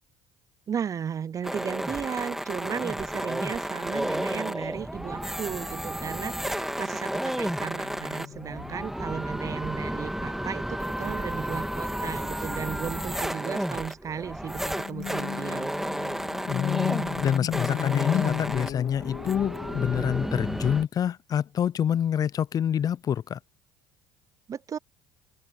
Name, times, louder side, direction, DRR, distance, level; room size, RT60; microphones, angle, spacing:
voice 1, 0.7-15.7 24.5-24.8, right 7 dB, 35° right, 0.5 m, -35 dB
sound 1, 1.4-20.8, right 1 dB, 5° right, 2.4 m, -32 dB
sound 2, 6.5-9.3 9.6-9.8 10.1-10.5 11.9-12.2 14.6-20.3, left 12 dB, 60° left, 3.2 m, -36 dB
voice 2, 16.4-23.4, left 9 dB, 40° left, 0.5 m, -27 dB
hypercardioid pair, 70°, 9 cm